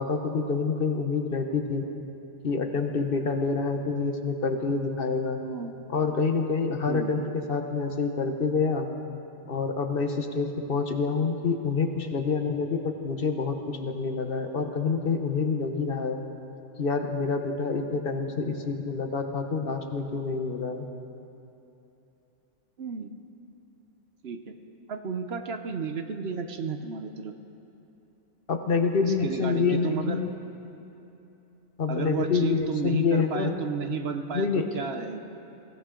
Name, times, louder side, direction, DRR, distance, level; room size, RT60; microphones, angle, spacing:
voice 1, 0.0-1.8 2.4-5.4 5.9-8.9 9.5-16.2 16.8-20.9 28.5-30.3 31.8-33.6 34.3-34.7, left 4 dB, 50° left, 5 dB, 1.1 m, -27 dB
voice 2, 5.4-5.7 6.9-7.1 22.8-23.1 24.2-24.5 24.9-27.3 29.0-30.2 31.9-35.2, right 6 dB, 60° right, 7 dB, 1.0 m, -33 dB
22.0 x 15.5 x 3.8 m, 2.9 s
omnidirectional pair, 1.2 m